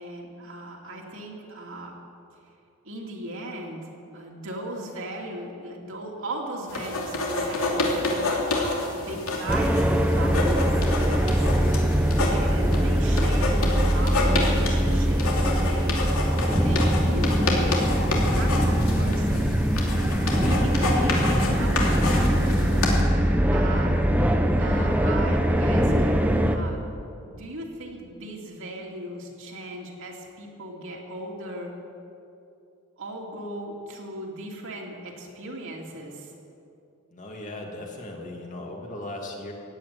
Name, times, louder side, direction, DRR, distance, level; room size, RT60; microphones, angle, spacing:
voice 1, 0.0-2.0 2.8-9.8 10.1-11.5 12.3-13.6 13.9-15.3 15.7-16.0 16.6-19.5 20.4-22.9 23.5-23.9 24.6-26.8 27.3-31.7 33.0-36.3, right 1 dB, 65° right, -1 dB, 2.7 m, -37 dB
sound 1, 6.7-23.0, left 2 dB, 75° left, 2.9 m, -29 dB
sound 2, 9.5-26.6, equal, 5° right, 0.9 m, -22 dB
voice 2, 37.1-39.5, left 1 dB, 35° left, 0 dB, 2.4 m, -37 dB
16.0 x 8.8 x 9.6 m, 2.6 s
head